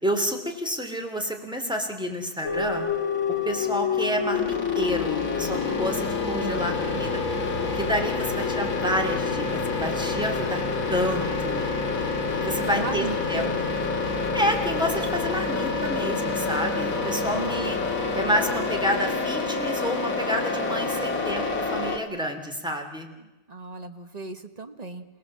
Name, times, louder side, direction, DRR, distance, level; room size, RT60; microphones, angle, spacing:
voice 1, 0.0-2.9 3.5-7.2 7.7-10.6 10.9-11.6 12.4-13.4 14.3-17.8 18.1-23.1, equal, 5° right, 4 dB, 2.6 m, -29 dB
sound 1, 2.4-22.0, left 4 dB, 60° left, 2.6 m, -27 dB
voice 2, 12.7-13.7 17.3-17.8 23.2-25.0, right 3 dB, 25° right, 8 dB, 1.3 m, -36 dB
28.0 x 17.5 x 7.5 m, 1.1 s
omnidirectional pair, 1.7 m